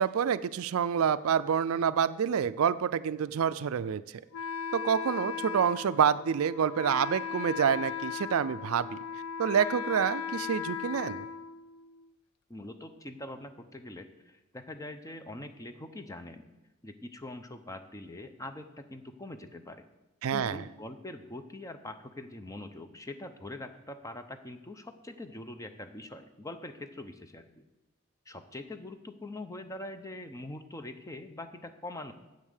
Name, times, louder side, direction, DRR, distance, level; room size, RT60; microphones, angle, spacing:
voice 1, 0.0-4.0 4.7-9.0 9.4-11.3 20.2-20.6, right 7 dB, 70° right, 15 dB, 0.4 m, -27 dB
Wind instrument woodwind instrument, 4.3-12.1, left 8 dB, 75° left, 0.4 m, -37 dB
voice 2, 12.5-16.4 16.8-19.9 20.3-27.6 28.3-32.1, left 2 dB, 15° left, 8 dB, 0.7 m, -43 dB
8.8 x 8.0 x 6.5 m, 1.1 s
head